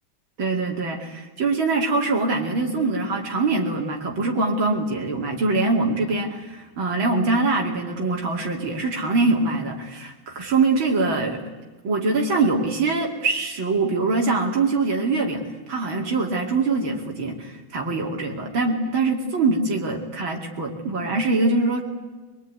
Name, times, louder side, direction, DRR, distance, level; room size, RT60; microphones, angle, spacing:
voice 1, 0.4-11.4 11.8-21.8, right 3 dB, 75° right, 1 dB, 3.3 m, -23 dB
23.5 x 23.0 x 9.6 m, 1.2 s
omnidirectional pair, 2.2 m